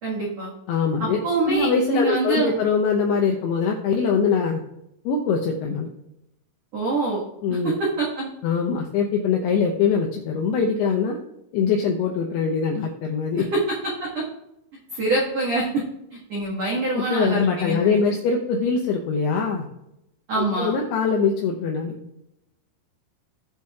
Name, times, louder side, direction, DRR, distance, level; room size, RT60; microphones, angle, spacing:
voice 1, 0.0-0.5 1.0-2.5 6.7-7.2 7.5-8.3 13.5-13.7 14.0-14.2 14.9-15.8 16.1-18.0 20.3-20.7, right 2 dB, 90° right, -4 dB, 1.4 m, -25 dB
voice 2, 0.7-1.2 1.5-4.6 5.1-5.9 7.4-7.7 8.4-11.2 11.5-13.4 16.9-19.6 20.4-22.0, left 5 dB, 85° left, 1 dB, 2.3 m, -23 dB
17.5 x 7.4 x 2.3 m, 0.84 s
omnidirectional pair, 5.7 m